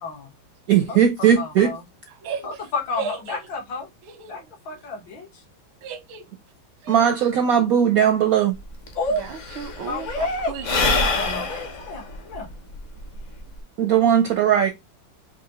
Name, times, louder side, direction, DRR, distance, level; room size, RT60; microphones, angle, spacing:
voice 1, 0.0-0.3 0.9-1.0 1.4-1.8 2.4-3.9 4.3-5.4 8.9-9.3 9.8-10.6 11.3-12.0 12.3-12.5, left 2 dB, 70° left, 2.0 m, -30 dB
voice 2, 0.7-1.7 6.9-8.5 13.8-14.7, right 9 dB, 70° right, 0.8 m, -18 dB
voice 3, 2.2-2.6 3.0-3.4 4.0-4.5 5.8-6.3 6.8-7.0 9.1-11.6 14.2-14.3, right 6 dB, 90° right, 1.7 m, -35 dB
Sigh / Breathing, 8.6-8.7 8.9-13.6, left 3 dB, 50° left, 1.0 m, -26 dB
5.0 x 2.8 x 2.9 m
omnidirectional pair, 2.2 m